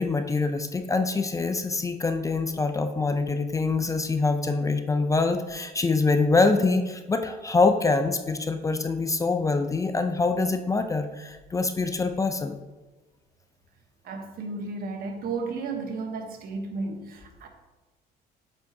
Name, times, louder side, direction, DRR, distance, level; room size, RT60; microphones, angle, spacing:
voice 1, 0.0-12.6, left 3 dB, 20° left, 8 dB, 0.4 m, -25 dB
voice 2, 14.0-17.5, right 3 dB, 60° right, 4 dB, 1.0 m, -33 dB
8.2 x 5.2 x 2.7 m, 1.2 s
cardioid pair, 110°, 17 cm